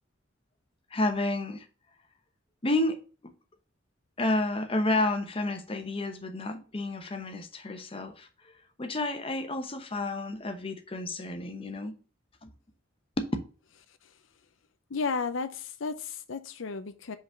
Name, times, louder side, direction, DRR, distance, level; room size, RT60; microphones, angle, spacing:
voice 1, 0.9-1.6 2.6-3.0 4.2-8.3 8.8-11.9 12.4-12.5 13.2-13.3, left 2 dB, 30° left, 1.0 m, -30 dB
voice 2, 14.9-17.2, left 4 dB, 80° left, 0.6 m, -33 dB
5.2 x 4.1 x 5.8 m
head